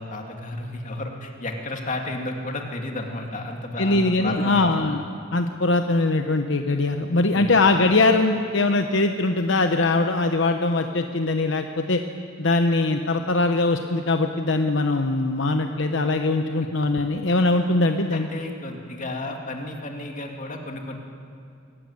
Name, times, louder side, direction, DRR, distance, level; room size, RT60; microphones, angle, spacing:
voice 1, 0.0-4.7 7.3-7.5 18.1-21.0, left 2 dB, 40° left, 2 dB, 2.3 m, -32 dB
voice 2, 3.8-5.0 5.3-12.0 12.4-18.3, left 2 dB, 65° left, 6 dB, 0.9 m, -21 dB
22.0 x 15.0 x 9.7 m, 2.5 s
head